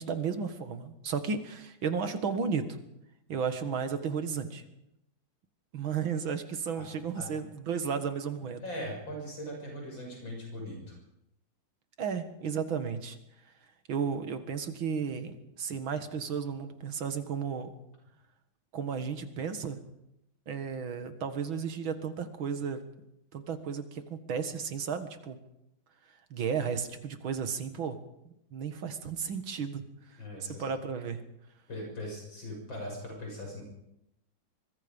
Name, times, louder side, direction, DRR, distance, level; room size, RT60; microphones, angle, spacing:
voice 1, 0.0-2.6 3.3-4.6 5.7-8.6 12.0-13.2 13.9-17.7 18.7-19.8 20.5-22.8 23.3-25.4 26.3-28.0 28.3-29.8 30.4-31.2, right 6 dB, 80° right, 9 dB, 2.5 m, -33 dB
voice 2, 6.7-7.3 8.6-10.9 30.2-30.6 31.7-33.6, left 1 dB, 75° left, 0 dB, 7.6 m, -40 dB
24.5 x 22.0 x 5.4 m, 0.83 s
omnidirectional pair, 2.2 m